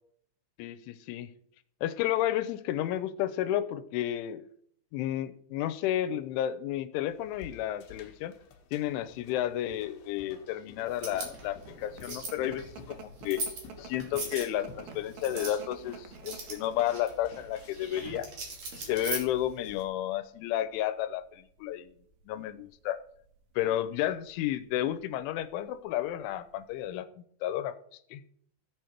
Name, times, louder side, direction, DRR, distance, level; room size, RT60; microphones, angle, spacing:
voice 1, 0.6-1.3 1.8-4.4 4.9-8.3 8.7-13.4 13.8-18.3 18.7-21.9 22.3-23.0 23.6-27.1 27.4-27.8 28.1-28.2, left 12 dB, 85° left, 12 dB, 3.2 m, -32 dB
sound 1, 7.1-18.0, left 7 dB, 65° left, 3.3 m, -52 dB
sound 2, 10.9-19.8, right 3 dB, 45° right, 3.3 m, -41 dB
sound 3, 11.7-26.9, right 6 dB, 80° right, 2.0 m, -51 dB
16.0 x 8.1 x 4.5 m, 0.65 s
omnidirectional pair, 5.5 m